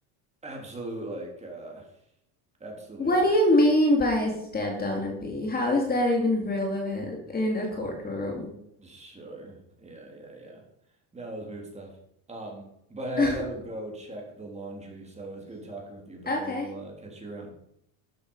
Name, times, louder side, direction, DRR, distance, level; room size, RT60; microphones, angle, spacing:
voice 1, 0.4-1.9 2.6-3.3 8.8-10.6 11.1-11.9 12.3-17.5, right 2 dB, 15° right, 0 dB, 3.4 m, -39 dB
voice 2, 3.0-8.4 13.2-13.3 16.3-16.7, left 1 dB, 20° left, 1 dB, 2.6 m, -25 dB
13.0 x 8.4 x 5.5 m, 0.77 s
cardioid pair, 145°, 45 cm